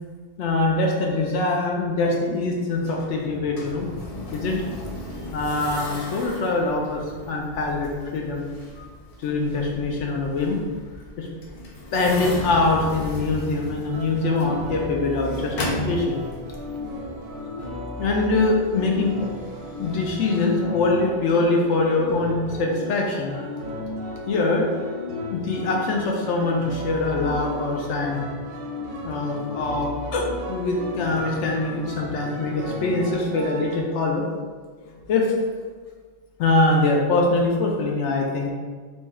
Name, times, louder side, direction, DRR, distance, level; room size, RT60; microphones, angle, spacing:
voice 1, 0.4-3.9 4.3-4.6 5.3-8.4 9.2-10.6 11.2-11.3 11.9-16.2 18.0-19.3 19.8-23.5 24.3-24.7 25.3-28.2 29.0-34.3 34.8-35.4 36.4-38.5, left 3 dB, 75° left, -1 dB, 0.9 m, -23 dB
sound 1, 2.8-20.2, left 1 dB, 45° left, 0.5 m, -36 dB
sound 2, 13.9-33.8, left 1 dB, 50° right, 0.8 m, -34 dB
4.6 x 2.2 x 4.1 m, 1.5 s
omnidirectional pair, 1.2 m